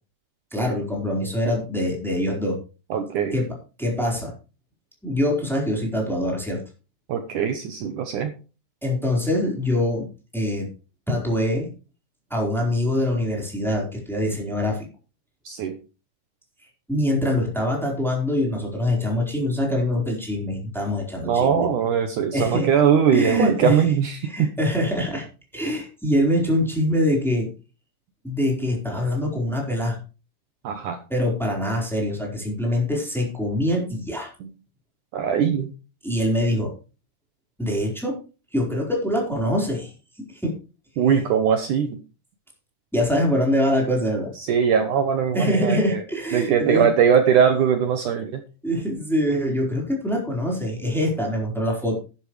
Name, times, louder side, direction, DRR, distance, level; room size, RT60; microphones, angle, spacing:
voice 1, 0.5-2.6 3.3-3.5 3.8-4.3 5.0-6.6 8.8-10.0 10.3-10.7 11.1-11.7 12.3-14.9 16.9-21.6 22.3-22.7 23.1-23.8 24.2-25.3 25.5-27.5 28.2-30.0 31.1-34.3 36.0-36.7 37.6-38.2 38.5-39.9 40.2-40.5 41.1-41.2 42.9-44.3 45.3-46.9 48.6-51.9, left 1 dB, ahead, -1 dB, 3.9 m, -24 dB
voice 2, 2.9-3.4 7.1-8.3 15.4-15.8 21.2-24.5 30.6-31.0 34.4-34.5 35.1-35.7 41.0-42.0 44.4-46.0 46.3-48.4, right 7 dB, 80° right, 7 dB, 1.8 m, -21 dB
11.5 x 11.0 x 3.3 m, 0.33 s
omnidirectional pair, 5.0 m